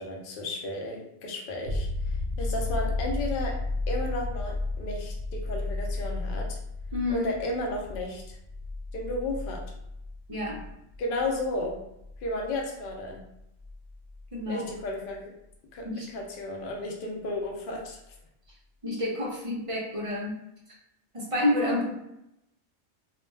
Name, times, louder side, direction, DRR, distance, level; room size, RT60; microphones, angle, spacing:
voice 1, 0.0-1.9 2.4-3.6 3.9-6.6 7.1-8.4 8.9-9.6 11.0-11.8 12.2-13.2 14.5-15.3 15.7-18.0, left 1 dB, 55° left, 0 dB, 0.7 m, -33 dB
sound 1, 1.6-15.2 17.9-18.0, left 2 dB, 80° left, 1.1 m, -34 dB
voice 2, 6.9-7.3 10.3-10.6 14.3-14.7 15.8-16.1 18.8-20.4 20.7-20.8 21.1-21.9, left 1 dB, 45° right, -3 dB, 0.4 m, -29 dB
2.4 x 2.1 x 3.2 m, 0.82 s
omnidirectional pair, 1.3 m